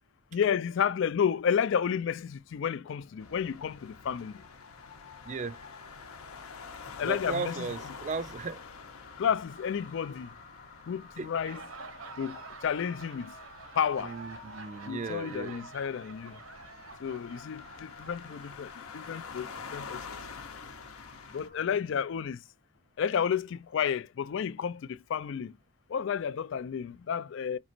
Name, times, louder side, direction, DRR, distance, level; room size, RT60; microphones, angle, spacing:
voice 1, 0.3-4.4 7.0-7.9 9.2-10.3 10.9-11.6 12.2-13.3 13.8-14.2 14.9-16.3 17.0-20.2 21.3-22.4 23.0-25.5 25.9-27.6, left 7 dB, 55° left, 0.3 m, -31 dB
sound 1, 3.0-21.9, left 4 dB, 35° left, 0.8 m, -54 dB
sound 2, 3.2-21.5, left 5 dB, 80° left, 0.8 m, -47 dB
voice 2, 5.3-5.6 7.1-8.6 11.2-11.3 14.0-15.6, right 4 dB, 35° right, 0.3 m, -36 dB
Laughter, 11.2-18.8, right 4 dB, 65° right, 0.8 m, -48 dB
5.0 x 3.0 x 2.5 m
head